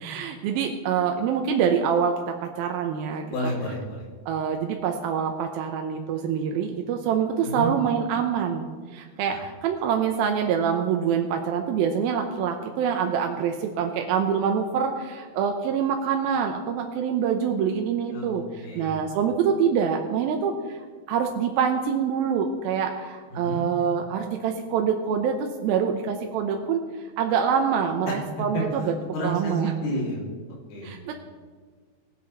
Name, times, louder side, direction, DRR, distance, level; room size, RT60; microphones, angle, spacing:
voice 1, 0.0-3.5 4.3-8.7 8.9-20.8 21.1-26.8 27.2-28.9 29.2-29.7 30.8-31.1, right 7 dB, 75° right, 3 dB, 2.5 m, -25 dB
voice 2, 3.3-4.0 7.4-7.7 9.3-9.4 18.1-19.0 23.3-23.7 28.1-28.2 28.5-30.2 30.7-31.0, equal, 70° left, -4 dB, 4.4 m, -30 dB
19.5 x 8.5 x 4.1 m, 1.5 s
omnidirectional pair, 4.6 m